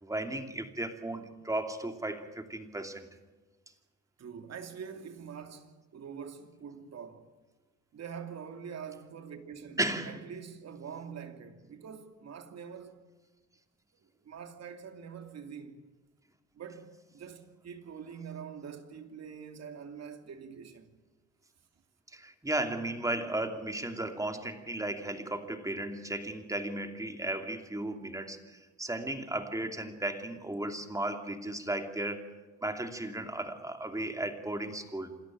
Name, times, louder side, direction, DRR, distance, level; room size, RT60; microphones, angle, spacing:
voice 1, 0.0-3.1 9.8-10.3 22.1-35.2, right 1 dB, 10° right, 2.7 m, -35 dB
voice 2, 4.2-7.3 7.9-9.8 10.0-13.0 14.2-15.8 16.5-20.9, right 7 dB, 60° right, 2.8 m, -45 dB
27.0 x 13.5 x 9.0 m
cardioid pair, 90°, 30 cm